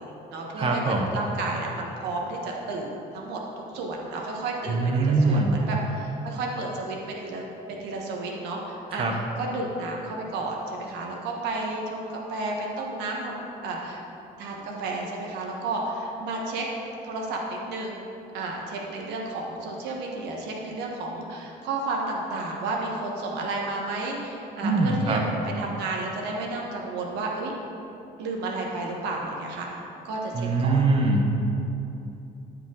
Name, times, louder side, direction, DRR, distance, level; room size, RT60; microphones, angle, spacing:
voice 1, 0.0-0.8 1.1-14.0 14.4-16.7 17.0-18.0 18.3-25.2 25.6-27.5 28.2-30.8, right 2 dB, 85° right, -1 dB, 1.4 m, -32 dB
voice 2, 0.6-1.1 4.7-5.5 8.9-9.1 24.6-25.2 30.3-31.4, right 3 dB, 35° right, 1 dB, 1.0 m, -23 dB
13.5 x 5.0 x 3.9 m, 2.9 s
cardioid pair, 110°, 17 cm